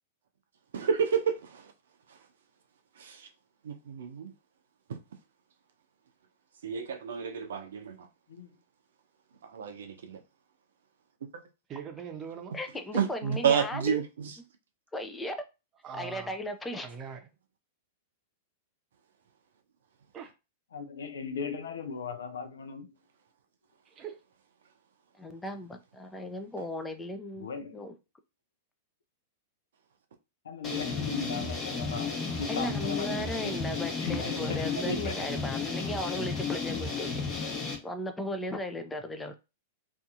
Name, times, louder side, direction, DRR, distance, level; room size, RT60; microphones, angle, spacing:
voice 1, 0.7-1.6 3.0-3.2 3.6-4.3 4.9-5.0 6.6-8.0 9.5-10.2 12.9-14.3 34.8-35.0, right 7 dB, 70° right, 0.5 m, -30 dB
voice 2, 11.7-12.6 15.8-16.4 16.8-17.3 20.1-20.3 23.9-24.2 32.6-32.7, right 7 dB, 30° right, 0.7 m, -42 dB
voice 3, 12.5-14.0 14.9-15.4 15.9-16.9 25.2-27.5 27.7-27.9 32.5-37.2 37.8-39.3, left 1 dB, 10° left, 0.5 m, -36 dB
voice 4, 20.7-22.9 27.4-27.8 30.4-33.6 34.0-35.3, left 5 dB, 75° left, 0.5 m, -38 dB
sound 1, 30.6-37.7, left 4 dB, 30° left, 1.0 m, -33 dB
2.7 x 2.5 x 2.4 m
figure-of-eight pair, 100°, 0 cm